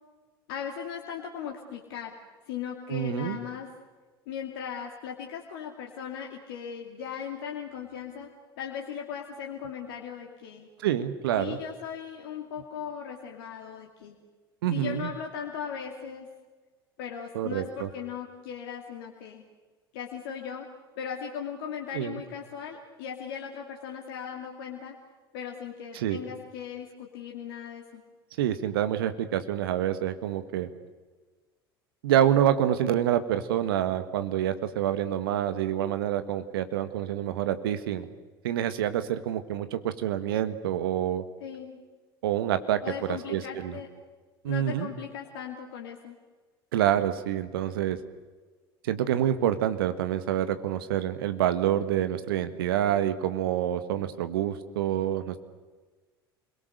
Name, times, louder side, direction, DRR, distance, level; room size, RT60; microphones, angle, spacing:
voice 1, 0.5-2.1 2.5-3.7 4.3-10.7 11.4-14.2 14.7-16.3 17.0-19.4 19.9-20.7 21.0-25.0 25.3-28.0 41.4-41.8 42.8-43.9 44.5-46.1, left 8 dB, 65° left, 1 dB, 2.5 m, -38 dB
voice 2, 2.9-3.4 10.8-11.6 14.6-15.1 17.3-17.9 21.9-22.2 25.9-26.2 28.4-30.7 32.0-38.1 38.4-41.2 42.2-42.8 43.1-43.8 44.4-44.9 46.7-48.0 48.8-55.4, right 11 dB, 70° right, 10 dB, 1.6 m, -27 dB
29.0 x 22.0 x 6.7 m, 1.3 s
figure-of-eight pair, 70°, 13 cm